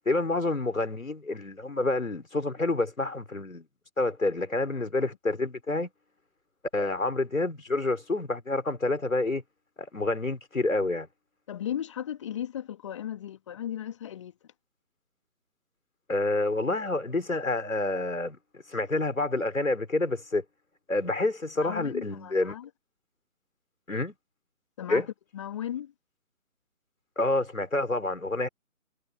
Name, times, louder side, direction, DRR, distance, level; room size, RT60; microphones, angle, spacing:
voice 1, 0.1-3.7 4.0-5.9 6.7-9.4 9.8-11.1 16.1-20.4 20.9-22.6 23.9-24.1 24.9-25.1 27.2-28.5, left 2 dB, 70° left, 5.2 m, -28 dB
voice 2, 11.5-14.3 21.6-22.7 24.8-25.9, left 10 dB, 20° left, 1.8 m, -36 dB
figure-of-eight pair, 145°, 41 cm